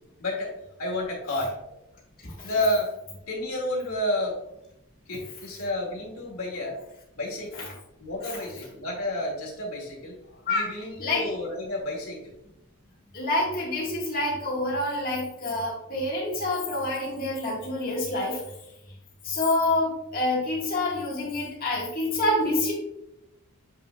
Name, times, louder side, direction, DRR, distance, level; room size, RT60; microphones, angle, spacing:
voice 1, 0.2-0.5 0.8-1.7 2.4-2.9 3.3-4.4 5.1-6.8 7.1-7.5 8.0-12.3, left 1 dB, 70° left, -3 dB, 2.2 m, -30 dB
voice 2, 11.0-11.3 13.1-18.4 19.2-22.7, left 2 dB, 45° left, -6 dB, 1.6 m, -27 dB
7.6 x 5.8 x 2.3 m, 0.87 s
head